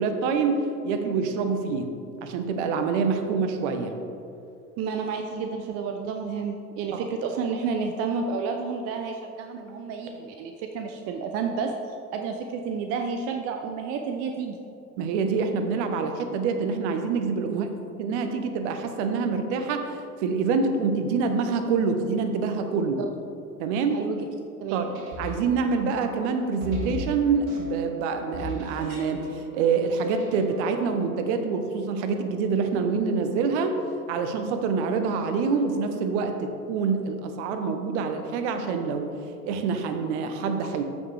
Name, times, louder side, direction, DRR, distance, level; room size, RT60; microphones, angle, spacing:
voice 1, 0.0-1.9 2.2-3.9 6.9-7.0 15.0-17.7 18.0-23.0 23.6-24.0 24.7-29.3 29.5-33.8 34.1-39.1 39.4-40.8, right 5 dB, 50° right, 7 dB, 1.0 m, -26 dB
voice 2, 4.8-14.6 17.5-17.7 23.0-23.1 23.9-24.2 24.6-24.9, right 5 dB, 30° right, 4 dB, 0.6 m, -31 dB
sound 1, 24.6-30.7, equal, 65° right, 2.0 m, -39 dB
14.0 x 6.3 x 3.4 m, 2.7 s
figure-of-eight pair, 75°, 46 cm